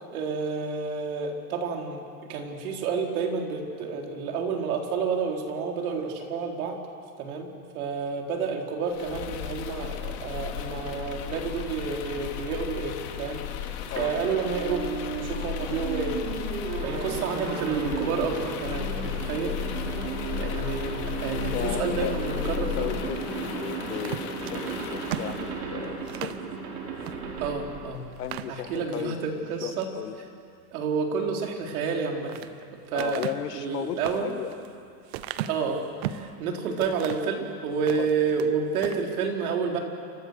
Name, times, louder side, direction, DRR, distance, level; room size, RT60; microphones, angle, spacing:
voice 1, 0.1-2.0 2.3-6.8 7.2-13.7 14.0-19.9 20.3-21.0 21.2-23.0 27.4-28.1 28.5-29.9 30.7-32.3 32.9-33.2 33.5-34.3 35.5-39.8, right 5 dB, 60° right, 2 dB, 4.1 m, -30 dB
sound 1, 8.9-25.6, left 10 dB, 45° left, 2.5 m, -35 dB
sound 2, 14.0-28.7, right 5 dB, 80° right, 6.3 m, -35 dB
voice 2, 21.4-22.2 22.6-26.4 28.2-30.2 32.9-34.5 38.0-38.1, left 11 dB, 70° left, 11 dB, 1.6 m, -35 dB
sound 3, 23.9-26.4 27.0-27.2 27.6-27.7 28.1-29.1 29.5-30.0 31.8-32.5 33.0-36.3 36.8-37.3 37.7-38.5 38.8-39.1, right 12 dB, 40° right, 0.9 m, -37 dB
29.0 x 25.0 x 6.6 m, 2.4 s
supercardioid pair, 165°, 49 cm